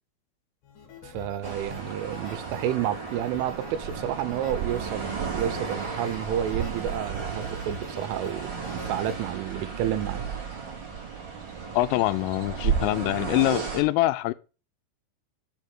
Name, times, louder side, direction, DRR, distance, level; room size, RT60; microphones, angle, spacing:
sound 1, 0.6-9.3, left 6 dB, 60° left, 3.7 m, -46 dB
voice 1, 1.0-10.3, right 11 dB, 80° right, 3.2 m, -30 dB
sound 2, 1.4-13.8, right 6 dB, 40° right, 1.7 m, -33 dB
voice 2, 11.7-14.3, left 18 dB, 90° left, 3.3 m, -24 dB
7.3 x 5.5 x 7.5 m
omnidirectional pair, 5.8 m